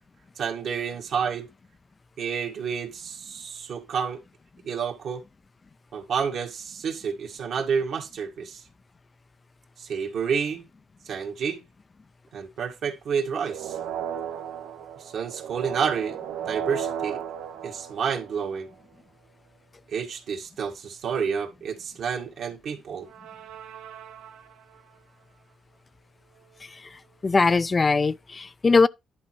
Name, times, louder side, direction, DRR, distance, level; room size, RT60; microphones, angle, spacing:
voice 1, 0.4-1.5 2.2-4.2 4.6-5.2 5.9-8.6 9.8-10.6 11.1-11.6 12.3-13.8 15.1-16.2 16.5-17.2 17.6-18.7 19.9-23.1, right 6 dB, 70° right, 1.9 m, -29 dB
sound 1, 13.4-18.7 23.1-24.7, right 8 dB, 90° right, 0.9 m, -35 dB
voice 2, 26.6-28.9, left 4 dB, 30° left, 0.4 m, -22 dB
10.5 x 4.1 x 4.5 m
cardioid pair, 90°, 0 cm